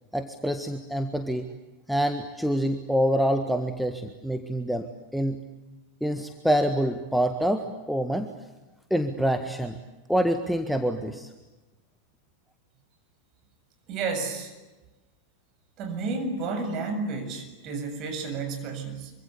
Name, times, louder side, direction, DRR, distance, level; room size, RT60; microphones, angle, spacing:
voice 1, 0.1-1.5 1.9-4.9 5.1-5.4 6.0-8.3 8.9-9.8 10.1-11.3, equal, ahead, 7 dB, 1.6 m, -26 dB
voice 2, 13.9-14.5 15.8-19.1, right 4 dB, 35° right, 6 dB, 7.4 m, -31 dB
26.0 x 25.0 x 8.3 m, 1.1 s
figure-of-eight pair, 90°, 0 cm